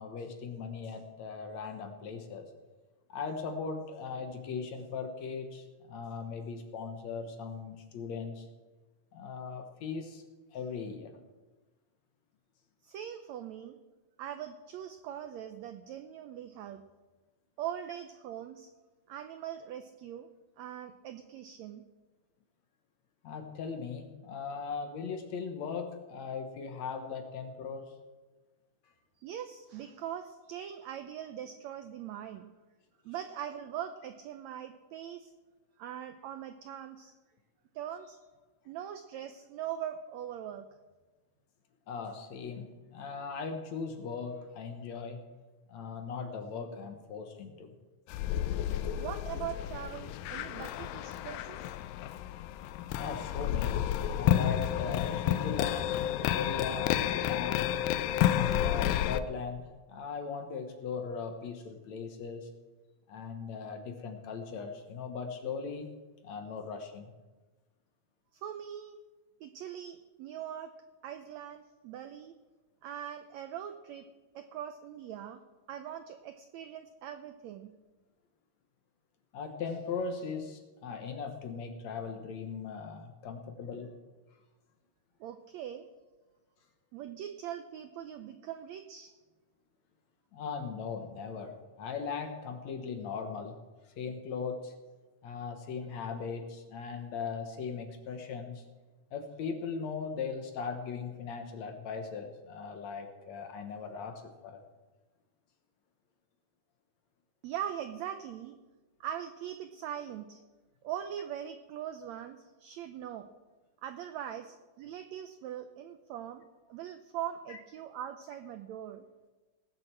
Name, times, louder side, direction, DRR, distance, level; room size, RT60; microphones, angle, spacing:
voice 1, 0.0-2.5 3.1-8.5 9.1-10.2 10.5-11.2 23.2-27.9 41.9-45.2 45.7-47.8 52.9-56.0 56.3-57.7 58.2-62.5 63.1-65.9 66.2-67.1 79.3-83.9 90.3-93.6 94.0-94.7 95.2-98.6 99.1-104.6 117.5-117.6, left 5 dB, 65° left, 6 dB, 2.1 m, -39 dB
voice 2, 12.8-13.8 14.2-16.8 17.6-18.7 19.1-20.3 20.6-21.8 29.2-32.5 33.0-35.3 35.8-37.1 37.7-38.2 38.7-40.7 48.9-51.7 68.3-69.0 69.4-70.7 71.0-72.4 72.8-74.1 74.3-75.4 75.7-77.7 85.2-85.9 86.9-89.1 107.4-108.6 109.0-110.4 110.8-113.3 113.8-119.0, right 10 dB, 80° right, 8 dB, 1.6 m, -41 dB
sound 1, 48.1-59.2, left 11 dB, 90° left, 2.4 m, -31 dB
18.5 x 7.7 x 7.4 m, 1.2 s
omnidirectional pair, 4.0 m